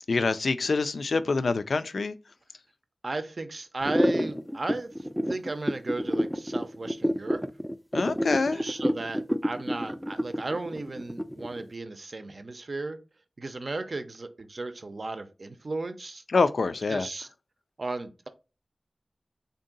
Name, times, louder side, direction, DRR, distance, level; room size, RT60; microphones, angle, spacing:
voice 1, 0.1-2.2 7.9-8.6 16.3-17.1, left 4 dB, 85° left, 0.3 m, -25 dB
voice 2, 3.0-4.9 5.3-7.5 8.5-13.0 13.4-16.2 16.9-17.3 17.8-18.3, right 3 dB, 60° right, 0.5 m, -35 dB
sound 1, 3.8-11.6, equal, ahead, 0.3 m, -28 dB
3.6 x 2.7 x 3.8 m
wide cardioid pair, 70°, 0 cm